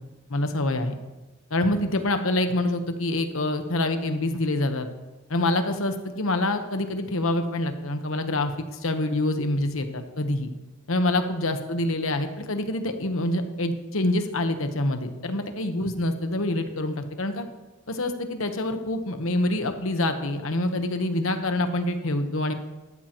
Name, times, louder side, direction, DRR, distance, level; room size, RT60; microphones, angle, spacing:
voice 1, 0.3-0.9 1.5-4.9 5.3-10.5 10.9-17.4 17.9-22.5, left 1 dB, 75° left, 7 dB, 1.1 m, -26 dB
13.5 x 12.5 x 3.0 m, 1.1 s
head